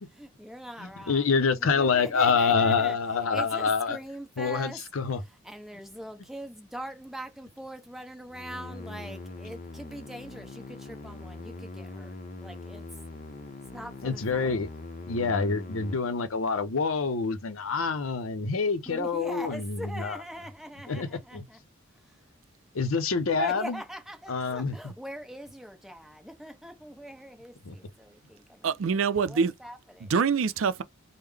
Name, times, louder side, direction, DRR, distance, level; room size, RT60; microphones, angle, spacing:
voice 1, 0.1-1.3 1.6-3.0 3.3-4.8 5.3-12.8 13.7-14.6 18.9-21.6 22.0-22.2 23.4-30.1, equal, ahead, 0.7 m, -42 dB
voice 2, 0.8-4.0 4.4-5.2 14.0-14.7 15.0-20.2 20.9-21.4 22.7-23.8 24.3-24.9 27.6-27.7, left 5 dB, 85° left, 0.6 m, -27 dB
sound 1, 8.3-16.0, left 2 dB, 40° left, 0.7 m, -42 dB
voice 3, 28.6-29.5 30.0-30.8, right 5 dB, 70° right, 0.4 m, -25 dB
3.6 x 2.1 x 3.3 m
head